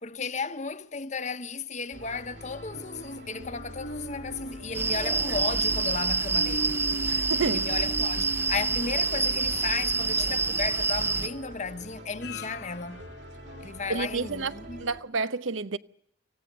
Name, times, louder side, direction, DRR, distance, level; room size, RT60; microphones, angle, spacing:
voice 1, 0.0-6.8 7.5-13.1 13.6-14.9, left 4 dB, 35° left, 1.0 m, -34 dB
sound 1, 1.9-15.0, right 1 dB, 60° right, 3.4 m, -45 dB
sound 2, 2.7-14.2 14.6-14.7, equal, 60° left, 1.0 m, -42 dB
sound 3, 4.7-11.3, right 4 dB, 10° right, 0.8 m, -27 dB
voice 2, 7.1-7.7 13.9-14.5 14.8-15.8, right 4 dB, 90° right, 0.9 m, -30 dB
26.0 x 16.0 x 6.8 m
head